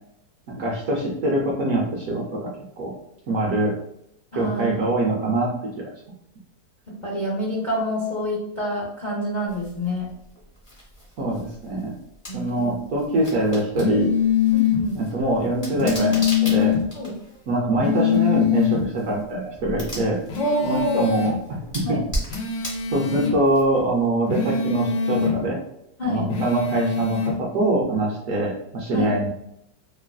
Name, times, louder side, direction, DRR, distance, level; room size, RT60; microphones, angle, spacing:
voice 1, 0.5-2.5 2.8-2.9 3.3-3.7 4.3-5.9 11.2-11.9 12.3-14.1 15.0-16.7 17.5-20.2 20.6-21.4 21.7-22.0 22.9-25.6 26.0-29.3, right 1 dB, 65° right, -2 dB, 0.9 m, -23 dB
voice 2, 4.3-4.9 6.9-10.1 12.3-12.8 14.5-15.0 16.9-17.2 20.4-21.2 21.8-22.0 26.0-26.3 28.9-29.1, equal, 75° left, -6 dB, 0.4 m, -27 dB
sound 1, 9.5-24.0, equal, 20° left, 0.8 m, -38 dB
sound 2, 13.8-14.8 15.8-16.8 17.8-18.8 20.3-21.3 22.3-23.3 24.3-25.3 26.3-27.3, left 8 dB, 90° left, 1.3 m, -23 dB
3.1 x 2.4 x 2.3 m, 0.78 s
omnidirectional pair, 1.9 m